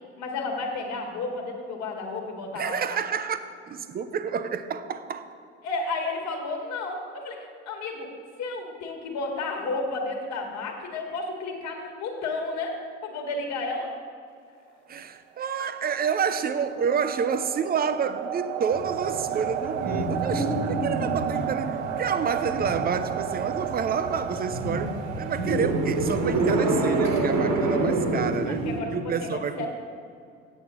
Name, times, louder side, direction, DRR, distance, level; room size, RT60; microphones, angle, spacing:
voice 1, 0.2-3.0 5.6-8.1 8.4-13.9 15.6-15.7 28.4-29.7, left 3 dB, 45° left, 2 dB, 1.6 m, -32 dB
voice 2, 2.6-3.4 3.7-5.2 14.9-29.7, right 6 dB, 25° right, 11 dB, 0.5 m, -29 dB
sound 1, 15.4-26.3, right 9 dB, 70° right, 0.7 m, -33 dB
sound 2, 18.7-28.8, right 2 dB, 55° right, 1.5 m, -28 dB
8.3 x 8.0 x 4.9 m, 2.3 s
figure-of-eight pair, 60°, 38 cm